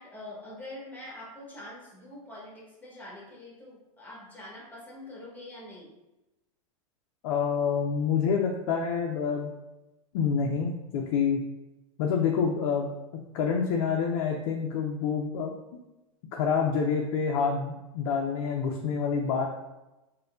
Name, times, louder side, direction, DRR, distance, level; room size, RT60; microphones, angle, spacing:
voice 1, 0.0-5.9, left 1 dB, 10° left, -4 dB, 1.2 m, -44 dB
voice 2, 7.2-9.5 10.1-11.4 12.0-12.9 13.3-15.5 16.3-19.5, left 6 dB, 60° left, 0 dB, 0.5 m, -27 dB
4.1 x 2.2 x 2.4 m, 1.0 s
hypercardioid pair, 115°, 18 cm